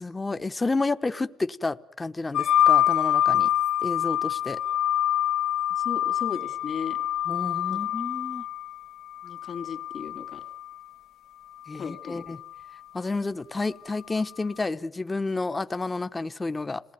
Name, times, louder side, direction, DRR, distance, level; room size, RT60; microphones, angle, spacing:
voice 1, 0.0-3.5 3.8-4.6 7.3-8.4 11.7-12.4 12.9-16.8, left 3 dB, 20° left, 11 dB, 1.0 m, -30 dB
sound 1, 2.3-10.8 11.7-12.6, left 11 dB, 80° left, 1.3 m, -26 dB
voice 2, 5.8-7.0 7.7-7.8 9.2-10.4 11.8-12.2, left 6 dB, 50° left, 7 dB, 2.7 m, -36 dB
27.5 x 18.5 x 9.4 m, 0.80 s
cardioid pair, 90°, 0 cm